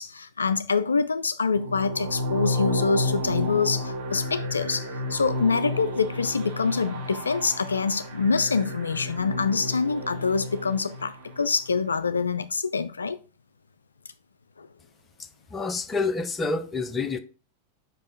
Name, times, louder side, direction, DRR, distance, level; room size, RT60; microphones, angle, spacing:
voice 1, 0.0-13.2 14.6-14.7, left 5 dB, 75° left, 0.3 m, -25 dB
sound 1, 1.5-11.6, left 1 dB, 50° right, 1.9 m, -32 dB
voice 2, 15.2-17.2, left 3 dB, 15° left, 0.7 m, -28 dB
5.4 x 5.3 x 3.9 m
figure-of-eight pair, 90°, 0 cm